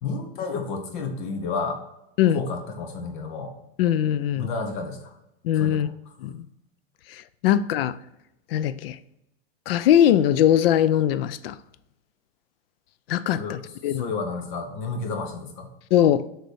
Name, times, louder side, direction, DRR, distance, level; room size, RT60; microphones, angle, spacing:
voice 1, 0.0-1.8 2.3-3.5 4.4-5.1 5.6-5.9 13.4-13.6 13.9-15.7, left 4 dB, 55° left, 1.2 m, -31 dB
voice 2, 3.8-4.5 5.4-5.9 6.2-6.4 7.1-8.0 8.5-9.0 9.7-11.6 13.1-14.1 15.9-16.2, left 11 dB, 75° left, 0.5 m, -21 dB
6.7 x 3.2 x 4.6 m
supercardioid pair, 170°, 29 cm